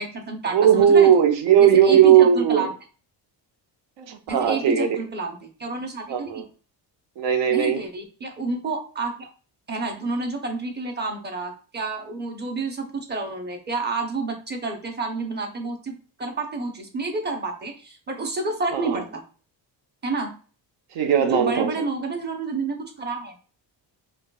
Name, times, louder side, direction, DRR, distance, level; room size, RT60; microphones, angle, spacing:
voice 1, 0.0-1.2 1.6-2.7 4.3-6.5 7.5-9.3 9.7-15.9 16.2-19.2 20.0-20.3 21.2-23.3, right 3 dB, 25° right, 0.8 m, -29 dB
voice 2, 0.5-2.7 4.0-4.9 6.1-6.4 7.2-7.8 18.7-19.0 20.9-21.7, right 9 dB, 80° right, 0.8 m, -17 dB
5.0 x 2.3 x 2.3 m
cardioid pair, 140°, 44 cm